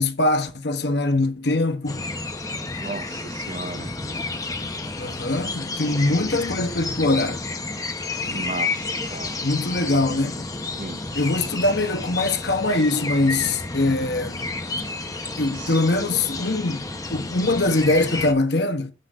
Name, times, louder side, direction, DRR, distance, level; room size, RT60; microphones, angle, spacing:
voice 1, 0.0-2.0 5.0-7.4 9.4-10.3 11.1-14.4 15.4-16.8 17.1-18.9, left 2 dB, 60° left, 1.2 m, -22 dB
sound 1, 1.9-18.3, left 3 dB, 20° left, 0.9 m, -31 dB
voice 2, 2.8-3.9 8.3-9.4 10.8-11.0 15.5-15.7, right 3 dB, 40° right, 0.6 m, -35 dB
9.6 x 4.0 x 6.7 m
head